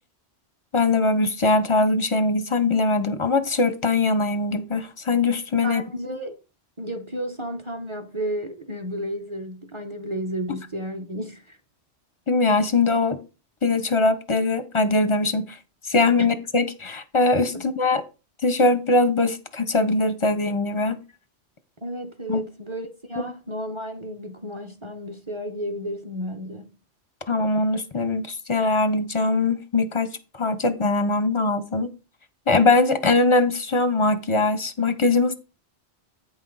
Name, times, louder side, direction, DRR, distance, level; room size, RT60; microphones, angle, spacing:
voice 1, 0.7-5.8 12.3-13.2 13.6-15.6 15.9-18.0 18.4-21.0 22.3-22.4 23.2-23.3 27.3-31.9 32.5-35.3, left 3 dB, 35° left, 0.5 m, -21 dB
voice 2, 5.6-6.4 6.8-11.6 16.2-16.3 17.5-17.7 21.8-26.7, equal, 30° right, 0.8 m, -32 dB
8.6 x 5.6 x 3.9 m
omnidirectional pair, 1.1 m